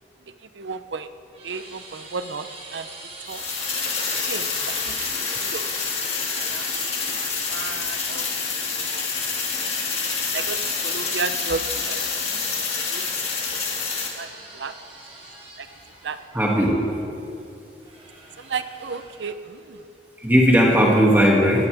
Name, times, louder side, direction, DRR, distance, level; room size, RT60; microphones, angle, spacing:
voice 1, 0.4-1.1 1.4-2.9 3.2-3.4 3.7-3.9 4.2-5.7 6.4-8.3 8.8-9.1 9.8-12.5 12.8-13.2 13.5-13.6 14.2-14.3 14.5-14.7 15.6-15.7 16.0-16.4 18.4-19.9, right 4 dB, 85° right, 11 dB, 0.7 m, -34 dB
sound 1, 0.7-8.0 9.0-16.9 17.8-19.4, right 2 dB, 35° right, 3.5 m, -42 dB
sound 2, 3.3-14.1, left 5 dB, 35° left, 2.2 m, -27 dB
voice 2, 16.3-16.9 20.2-21.7, equal, 10° right, -3 dB, 2.2 m, -17 dB
18.0 x 17.5 x 3.5 m, 2.6 s
head